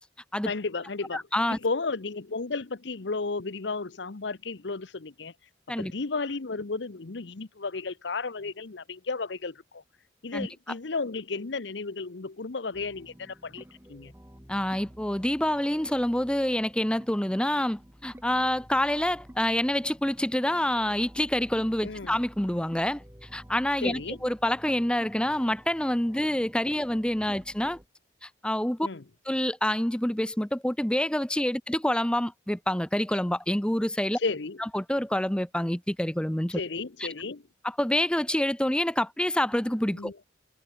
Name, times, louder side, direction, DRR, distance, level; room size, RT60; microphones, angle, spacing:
voice 1, 0.5-1.2 1.5-5.3 5.8-9.8 10.2-14.1 21.8-22.2 23.8-24.2 28.8-29.0 34.1-34.6 36.6-37.4 39.9-40.2, left 4 dB, 70° left, 0.9 m, -33 dB
voice 2, 1.1-1.6 5.7-5.9 10.3-10.5 14.5-23.0 23.3-27.8 28.2-28.8 29.3-34.2 34.7-36.6 37.6-40.1, left 1 dB, 5° left, 0.8 m, -27 dB
sound 1, 12.7-27.9, equal, 10° right, 2.1 m, -51 dB
head